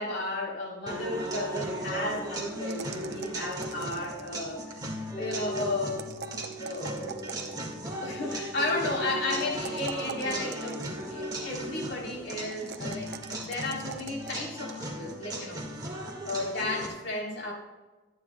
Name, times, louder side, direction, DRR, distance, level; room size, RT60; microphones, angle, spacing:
voice 1, 0.0-6.0 6.6-7.4 7.8-15.9 16.2-17.5, left 2 dB, 70° left, -2 dB, 3.5 m, -34 dB
sound 1, 0.9-16.9, right 1 dB, 20° right, 1.7 m, -37 dB
sound 2, 2.7-4.5 5.9-7.8 9.4-11.2 12.5-14.5, right 7 dB, 60° right, 0.8 m, -43 dB
sound 3, 5.1-11.9 12.2-12.4, left 2 dB, 35° left, 1.0 m, -45 dB
24.5 x 9.5 x 2.2 m, 1.2 s
head